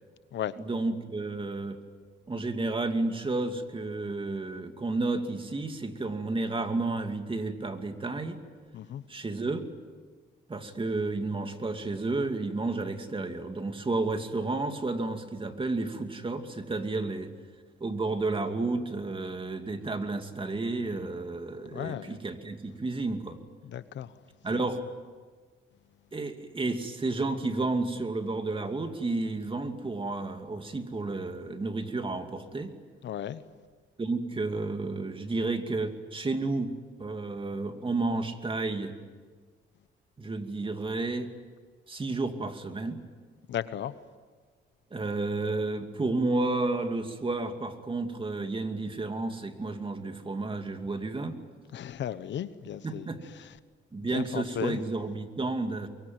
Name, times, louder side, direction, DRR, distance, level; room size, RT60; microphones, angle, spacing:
voice 1, 0.6-1.8 2.3-8.4 9.1-9.6 10.5-17.3 17.8-23.4 24.4-24.8 26.1-32.7 34.0-36.7 37.0-38.9 40.2-41.3 41.9-43.0 44.9-51.4 52.8-53.2 53.9-55.9, right 3 dB, 25° right, 6 dB, 2.6 m, -31 dB
voice 2, 21.6-22.2 23.6-24.1 24.5-24.6 33.0-33.4 43.5-43.9 51.7-53.1 53.4-53.5 54.1-54.8, left 10 dB, 65° left, 14 dB, 1.1 m, -35 dB
23.5 x 23.5 x 9.3 m, 1.5 s
cardioid pair, 90°, 20 cm